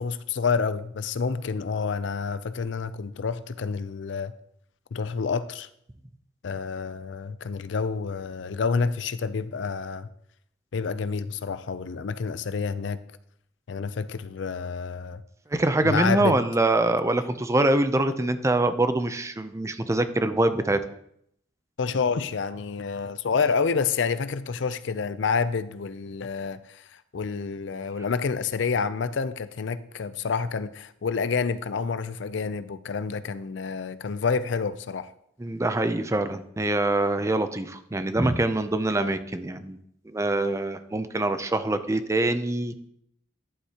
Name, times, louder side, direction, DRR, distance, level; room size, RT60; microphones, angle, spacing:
voice 1, 0.0-4.3 4.9-5.7 6.4-10.1 10.7-13.0 13.7-15.2 15.8-16.4 21.8-26.9 27.1-35.1, left 5 dB, 65° left, 0.5 m, -28 dB
voice 2, 15.5-20.8 35.4-39.8 40.1-42.9, right 2 dB, 15° right, 0.5 m, -24 dB
11.0 x 8.1 x 2.9 m
head